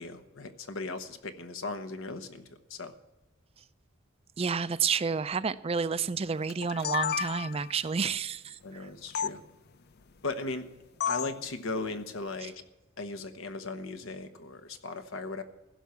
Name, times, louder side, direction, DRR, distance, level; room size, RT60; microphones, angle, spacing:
voice 1, 0.0-2.9 8.6-9.4 10.2-10.6 11.1-12.6 13.0-15.4, left 3 dB, 80° left, 1.2 m, -37 dB
voice 2, 4.4-8.9, right 5 dB, 30° right, 0.4 m, -30 dB
sound 1, 6.5-7.7 9.2-9.3 11.0-11.4, left 8 dB, 55° left, 0.5 m, -31 dB
15.5 x 5.9 x 8.2 m
head